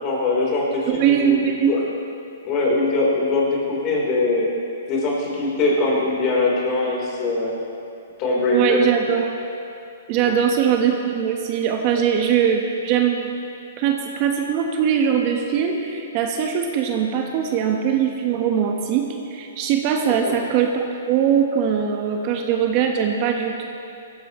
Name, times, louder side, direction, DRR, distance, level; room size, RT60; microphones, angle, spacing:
voice 1, 0.0-1.8 2.4-4.5 4.9-7.5 8.2-8.8 10.2-10.4 20.2-20.3, left 2 dB, 35° left, -3 dB, 3.9 m, -22 dB
voice 2, 0.9-1.7 8.5-9.3 10.1-13.3 13.8-23.7, right 8 dB, 40° right, 3 dB, 1.2 m, -21 dB
17.5 x 15.0 x 3.2 m, 2.6 s
hypercardioid pair, 140°, 0 cm